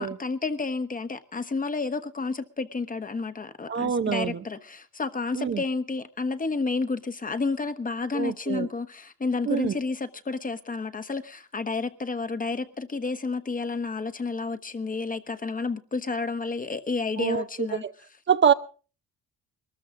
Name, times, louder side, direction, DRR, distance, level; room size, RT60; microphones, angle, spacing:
voice 1, 0.0-17.8, left 4 dB, 25° left, 1.2 m, -30 dB
voice 2, 3.7-4.4 5.4-5.6 8.1-8.7 9.5-9.8 17.2-17.4 17.8-17.9 18.3-18.5, right 7 dB, 40° right, 0.7 m, -24 dB
22.0 x 13.5 x 3.7 m
cardioid pair, 90°, 30 cm